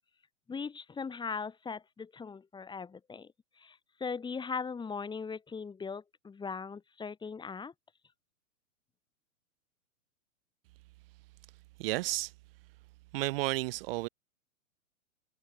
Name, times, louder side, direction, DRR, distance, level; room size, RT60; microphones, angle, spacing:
voice 1, 0.5-3.3 3.6-7.7, left 5 dB, 10° left, 3.7 m, -39 dB
voice 2, 11.8-12.3 13.1-14.1, right 20 dB, 40° right, 1.3 m, -32 dB
hypercardioid pair, 135°, 43 cm